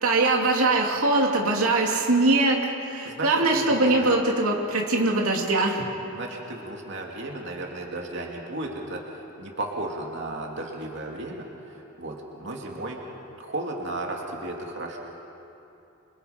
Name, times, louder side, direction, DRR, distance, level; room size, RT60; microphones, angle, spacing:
voice 1, 0.0-5.8, right 2 dB, 90° right, 0 dB, 2.7 m, -22 dB
voice 2, 3.0-4.1 6.1-9.0 9.4-13.0 13.4-15.0, right 2 dB, 55° right, 0 dB, 2.8 m, -34 dB
27.5 x 27.0 x 5.3 m, 2.9 s
head